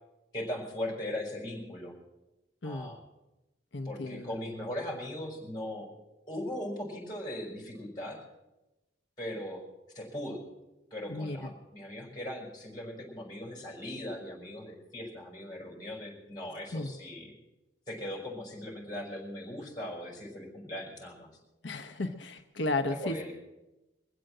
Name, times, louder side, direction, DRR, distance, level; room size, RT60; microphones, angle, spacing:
voice 1, 0.3-1.9 2.6-3.0 3.8-5.9 6.3-8.2 9.2-9.6 9.9-10.4 10.9-17.3 17.9-21.3 23.0-23.3, left 1 dB, 20° left, -1 dB, 5.3 m, -39 dB
voice 2, 2.6-2.9 3.7-4.3 11.1-11.4 16.7-16.9 21.6-23.3, left 2 dB, 85° left, 7 dB, 0.8 m, -34 dB
23.0 x 7.8 x 7.8 m, 1.0 s
head